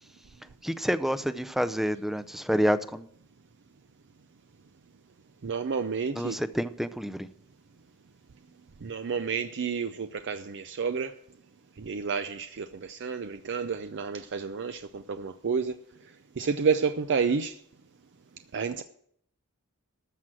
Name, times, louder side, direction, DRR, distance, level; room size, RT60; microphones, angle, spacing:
voice 1, 0.6-3.1 6.2-7.3, equal, ahead, 0.5 m, -28 dB
voice 2, 5.4-6.4 8.8-11.1 11.8-15.8 16.4-17.6 18.5-18.8, right 5 dB, 55° right, 0.5 m, -30 dB
13.5 x 6.3 x 7.6 m
head